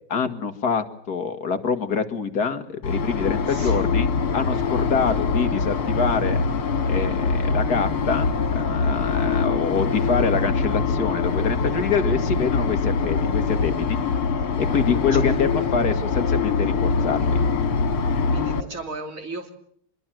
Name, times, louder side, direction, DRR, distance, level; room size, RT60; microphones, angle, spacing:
voice 1, 0.1-6.4 6.9-8.3 8.5-14.0 14.6-17.4, left 5 dB, 50° left, 8 dB, 2.1 m, -25 dB
sound 1, 2.8-18.6, left 5 dB, 80° left, 2.9 m, -23 dB
voice 2, 3.5-3.9 15.1-15.3 18.3-19.5, right 3 dB, 35° right, 5 dB, 3.3 m, -36 dB
25.5 x 22.0 x 7.6 m, 0.66 s
omnidirectional pair, 2.3 m